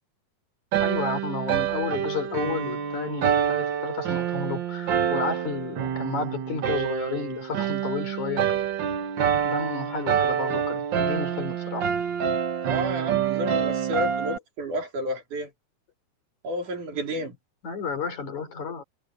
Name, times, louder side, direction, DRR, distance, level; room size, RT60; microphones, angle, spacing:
sound 1, 0.7-14.4, right 8 dB, 60° right, 1.2 m, -27 dB
voice 1, 0.8-8.7 9.4-11.9 17.6-18.8, left 5 dB, 65° left, 6.0 m, -32 dB
voice 2, 12.7-15.5 16.4-17.4, equal, 80° right, 5.4 m, -31 dB
omnidirectional pair, 3.5 m